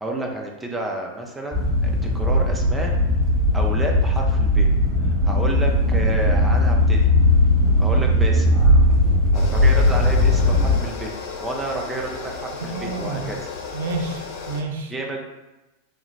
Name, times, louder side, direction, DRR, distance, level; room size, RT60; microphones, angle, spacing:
voice 1, 0.0-2.9 3.5-4.7 5.0-7.1 7.8-8.5 9.3-11.1 11.4-13.4 14.9-15.2, right 2 dB, 10° right, 0 dB, 0.5 m, -30 dB
sound 1, 1.5-10.8, left 1 dB, 25° right, 1.1 m, -18 dB
sound 2, 9.3-14.6, left 4 dB, 45° left, 0.5 m, -34 dB
voice 2, 12.6-13.3 13.7-14.9, right 3 dB, 60° right, 3 dB, 0.3 m, -29 dB
3.5 x 2.4 x 3.2 m, 1.0 s
figure-of-eight pair, 90°, 0 cm